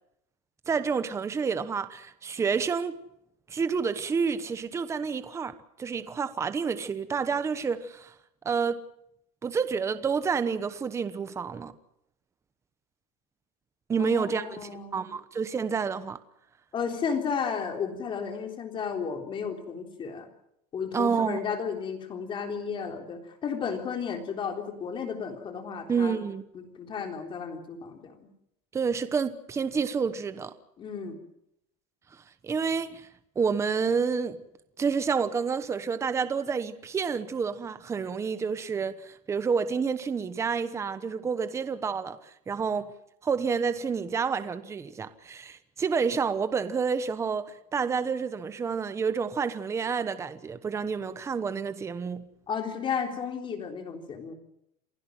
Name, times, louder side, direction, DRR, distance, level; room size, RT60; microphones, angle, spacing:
voice 1, 0.7-2.9 3.5-5.5 5.8-8.1 8.4-8.8 9.4-11.7 13.9-16.2 20.9-21.4 25.9-26.4 28.7-30.5 32.4-33.1 33.4-34.4 34.8-42.9 43.2-52.3, right 5 dB, 15° right, 1.0 m, -29 dB
voice 2, 14.0-15.1 16.7-20.3 20.7-26.2 26.5-28.3 30.8-31.2 52.5-54.3, left 6 dB, 25° left, 3.7 m, -33 dB
28.5 x 16.0 x 7.6 m
supercardioid pair, 160°, 21 cm